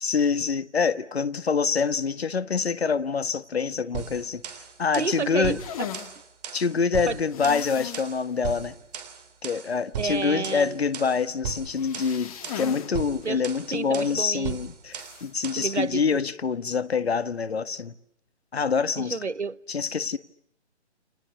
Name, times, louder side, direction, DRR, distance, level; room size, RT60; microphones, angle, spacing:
voice 1, 0.0-4.4 4.8-5.6 6.5-8.7 9.4-17.9 18.5-19.2 19.7-20.2, left 5 dB, 65° left, 1.6 m, -26 dB
sound 1, 3.9-15.8, right 7 dB, 35° right, 3.6 m, -37 dB
voice 2, 5.0-5.9 7.1-7.2 10.0-10.8 13.2-13.4 13.7-14.6 15.6-16.2 19.0-19.6, right 4 dB, 80° right, 1.2 m, -30 dB
sound 2, 5.6-6.1 7.3-8.1 8.5-8.6 9.0-9.1 11.7-12.9 13.2-13.3 14.9-15.3, left 9 dB, 30° left, 2.8 m, -37 dB
29.5 x 28.0 x 7.0 m
figure-of-eight pair, 140°, 34 cm